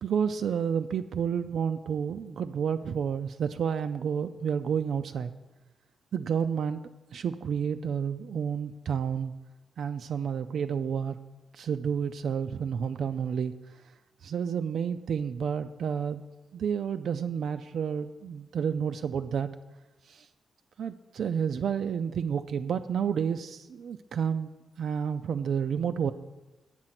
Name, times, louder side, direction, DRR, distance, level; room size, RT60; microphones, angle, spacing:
voice 1, 0.0-5.3 6.1-6.8 7.1-9.3 9.8-11.2 11.5-13.8 14.2-16.2 16.5-19.5 20.0-20.3 20.8-24.5 24.8-26.1, right 7 dB, 65° right, 8 dB, 0.3 m, -30 dB
7.9 x 7.6 x 5.8 m, 1.1 s
wide cardioid pair, 150°, 0 cm